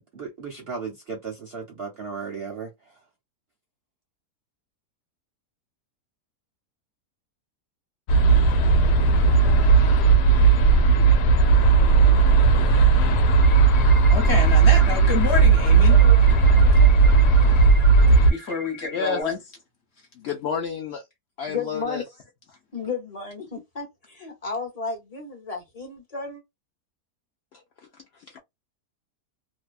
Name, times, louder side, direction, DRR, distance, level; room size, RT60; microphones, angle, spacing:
voice 1, 0.1-2.7, right 5 dB, 55° right, 0.7 m, -35 dB
sound 1, 8.1-18.3, right 4 dB, 90° left, 1.2 m, -16 dB
sound 2, 13.4-19.2, right 1 dB, ahead, 0.7 m, -41 dB
voice 2, 14.1-16.3 18.3-19.4, left 5 dB, 50° left, 1.1 m, -28 dB
voice 3, 18.9-19.2 20.1-21.1 21.4-22.0 27.5-28.4, left 5 dB, 75° left, 0.6 m, -31 dB
voice 4, 21.5-22.0 22.7-26.4, left 5 dB, 30° left, 0.8 m, -33 dB
2.7 x 2.1 x 2.3 m
omnidirectional pair, 1.7 m